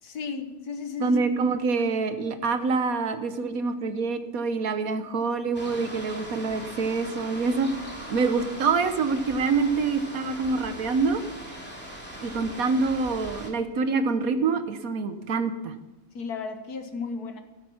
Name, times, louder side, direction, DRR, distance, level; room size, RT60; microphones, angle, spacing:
voice 1, 0.0-1.2 16.1-17.4, left 5 dB, 90° left, 6 dB, 1.9 m, -34 dB
voice 2, 1.0-7.7 8.1-11.2 12.2-15.7, right 4 dB, 70° right, 9 dB, 1.5 m, -26 dB
sound 1, 5.5-13.5, equal, 5° left, 2.7 m, -40 dB
14.0 x 13.5 x 5.8 m, 1.1 s
omnidirectional pair, 1.6 m